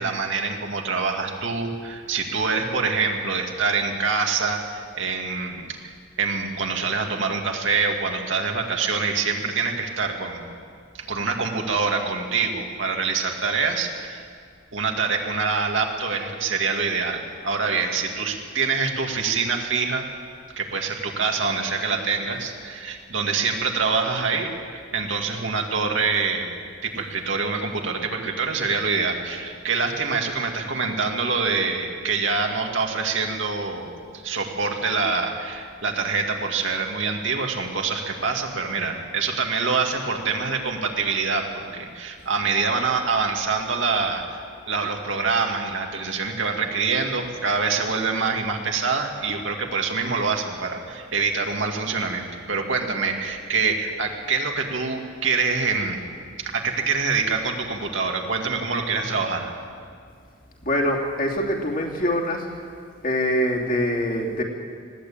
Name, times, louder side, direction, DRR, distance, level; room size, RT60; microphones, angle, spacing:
voice 1, 0.0-5.9 6.2-10.4 11.0-14.2 14.7-20.0 20.6-26.5 26.8-41.4 41.7-44.2 44.7-56.0 56.4-59.5, right 4 dB, 70° right, 2 dB, 2.4 m, -25 dB
voice 2, 60.6-62.4 63.0-64.4, equal, 45° left, -1 dB, 2.9 m, -24 dB
20.0 x 16.5 x 8.8 m, 2.1 s
head